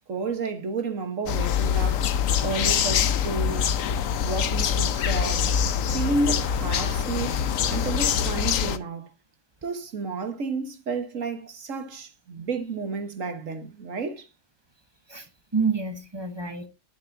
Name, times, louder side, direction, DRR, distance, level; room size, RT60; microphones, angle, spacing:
voice 1, 0.1-2.1 2.4-3.8 4.2-5.5 5.9-9.1 9.6-14.3, right 3 dB, 75° right, 1.8 m, -31 dB
sound 1, 1.3-8.8, left 8 dB, 85° left, 1.1 m, -24 dB
voice 2, 15.1-16.7, right 5 dB, 20° right, 1.0 m, -28 dB
10.5 x 9.7 x 2.7 m
omnidirectional pair, 1.4 m